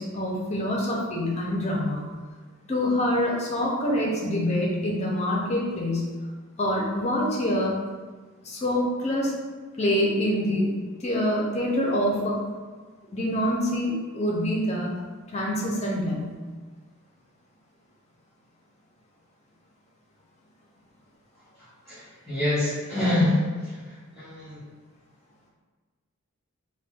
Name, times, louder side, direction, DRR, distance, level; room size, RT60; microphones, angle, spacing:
voice 1, 0.0-2.0 2.7-6.1 6.6-7.8 8.4-9.3 9.8-10.7 11.0-12.4 13.1-14.9 15.3-16.4, left 1 dB, 30° left, -2 dB, 0.5 m, -25 dB
voice 2, 21.8-23.8 24.1-24.6, left 1 dB, ahead, -15 dB, 1.1 m, -26 dB
4.1 x 2.2 x 2.3 m, 1.4 s
head